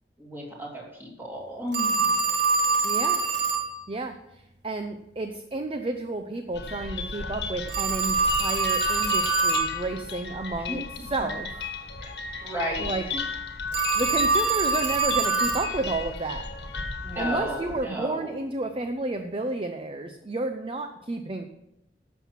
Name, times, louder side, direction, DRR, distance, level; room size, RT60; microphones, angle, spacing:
voice 1, 0.2-2.2 10.7-11.1 12.0-12.1 12.4-12.9 17.0-18.4, right 1 dB, 10° right, -3 dB, 2.8 m, -34 dB
Telephone, 1.7-3.7 7.7-9.7 13.7-15.7, right 4 dB, 75° right, 1.7 m, -24 dB
voice 2, 2.8-3.2 3.9-10.8 11.1-11.6 12.8-13.0 13.9-16.5 17.2-21.5, right 2 dB, 30° right, 6 dB, 0.6 m, -31 dB
sound 1, 6.5-17.8, left 4 dB, 70° left, 1.3 m, -34 dB
11.5 x 7.3 x 5.9 m, 0.88 s
head